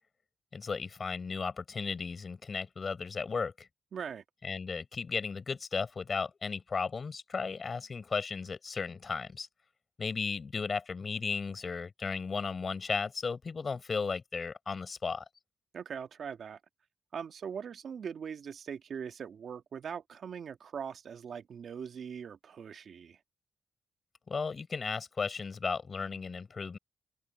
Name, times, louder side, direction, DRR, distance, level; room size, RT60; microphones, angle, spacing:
voice 1, 0.5-3.7 4.4-9.5 10.0-15.2 24.3-26.8, left 5 dB, 45° left, 6.2 m, -35 dB
voice 2, 3.9-4.2 15.7-16.6 17.1-23.2, right 7 dB, 65° right, 1.8 m, -41 dB
cardioid pair, 75°, 0 cm